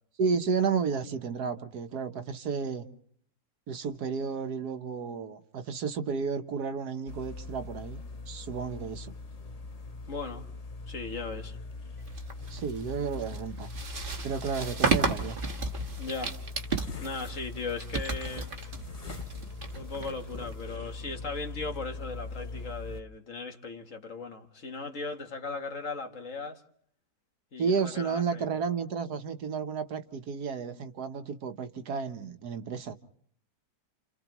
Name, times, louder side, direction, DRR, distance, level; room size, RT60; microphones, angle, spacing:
voice 1, 0.2-2.8 3.7-8.0 8.3-9.1 12.5-13.7 14.2-15.4 27.6-32.9, right 5 dB, 65° right, 7 dB, 1.5 m, -32 dB
sound 1, 7.1-23.0, left 3 dB, 30° left, 0.7 m, -41 dB
voice 2, 10.1-10.5 10.9-11.6 16.0-16.4 17.0-18.7 19.7-26.6 27.5-28.6, left 4 dB, 50° left, 5 dB, 1.6 m, -38 dB
sound 2, 12.1-20.7, right 4 dB, 35° right, 1.3 m, -34 dB
30.0 x 29.0 x 3.0 m, 0.62 s
omnidirectional pair, 1.9 m